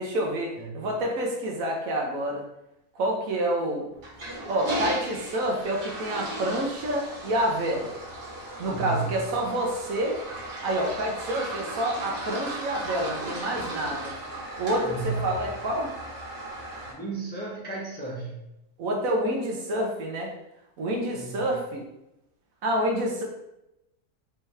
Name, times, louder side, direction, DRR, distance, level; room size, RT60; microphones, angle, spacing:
voice 1, 0.0-2.4 2.9-3.9 4.5-7.9 8.6-10.2 10.6-14.1 14.6-15.9 18.8-20.3 20.8-21.8 22.6-23.2, right 1 dB, 60° right, 0 dB, 1.1 m, -28 dB
Toilet flush, 4.0-16.9, right 1 dB, 80° right, 2.1 m, -36 dB
voice 2, 8.6-9.1 14.8-15.1 16.9-18.3 21.1-21.4, right 4 dB, 10° left, -4 dB, 0.5 m, -33 dB
4.7 x 3.2 x 3.3 m, 0.89 s
omnidirectional pair, 1.7 m